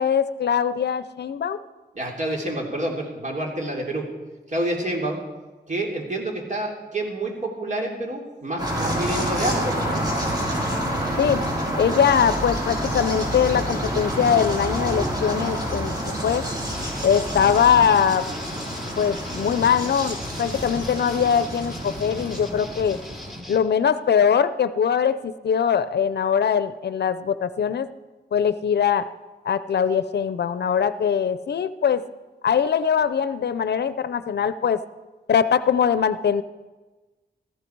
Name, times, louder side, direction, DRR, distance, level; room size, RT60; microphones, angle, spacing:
voice 1, 0.0-1.6 11.2-11.4 11.8-15.9 16.2-16.4 17.0-18.3 19.0-23.0 23.5-27.9 28.3-29.1 29.4-32.0 32.4-34.8 35.3-36.4, left 7 dB, 70° left, 14 dB, 0.6 m, -21 dB
voice 2, 1.9-4.1 4.5-5.2 5.7-10.0, right 1 dB, 45° right, 0 dB, 3.4 m, -28 dB
sound 1, 8.6-23.4, equal, 20° right, 3.9 m, -28 dB
sound 2, 16.7-23.6, left 1 dB, ahead, 1.7 m, -40 dB
17.0 x 14.5 x 4.6 m, 1.2 s
wide cardioid pair, 95°, 18 cm